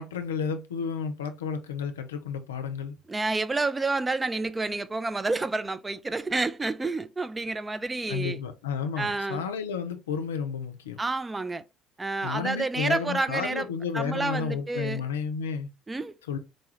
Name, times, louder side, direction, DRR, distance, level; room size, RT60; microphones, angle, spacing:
voice 1, 0.0-3.0 8.1-11.0 12.2-15.7 16.3-16.4, left 6 dB, 85° left, 0.4 m, -32 dB
voice 2, 3.1-8.4 9.0-9.4 11.0-11.6 12.0-13.7 13.9-15.0 15.9-16.1, right 3 dB, 20° right, 0.4 m, -29 dB
4.0 x 2.3 x 3.0 m
hypercardioid pair, 60°, 0 cm